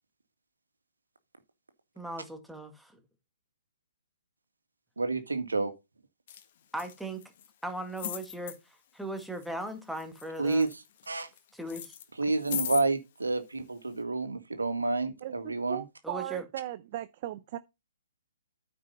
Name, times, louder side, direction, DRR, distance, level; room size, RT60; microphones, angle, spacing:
voice 1, 2.0-2.9 6.7-7.2 7.6-8.6 8.9-10.7 11.5-12.0 16.0-16.4, right 1 dB, ahead, 1.8 m, -38 dB
voice 2, 5.0-5.7 10.4-10.7 11.1-11.3 12.2-15.8, right 3 dB, 85° right, 1.9 m, -29 dB
sound 1, 6.3-6.4 6.7-7.5 8.0-8.6 9.2-9.7 10.0-11.4 11.7-12.9 13.6-13.7, left 10 dB, 45° left, 1.7 m, -38 dB
voice 3, 15.2-17.6, right 14 dB, 40° right, 0.6 m, -38 dB
9.3 x 5.4 x 5.5 m
hypercardioid pair, 140°, 0 cm